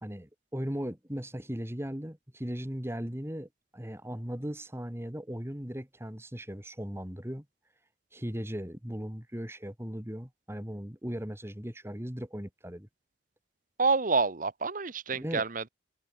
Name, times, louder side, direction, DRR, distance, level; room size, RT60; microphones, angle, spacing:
voice 1, 0.0-7.5 8.1-12.9 15.1-15.4, equal, 15° right, 2.1 m, -38 dB
voice 2, 13.8-15.7, right 4 dB, 45° right, 1.0 m, -28 dB
head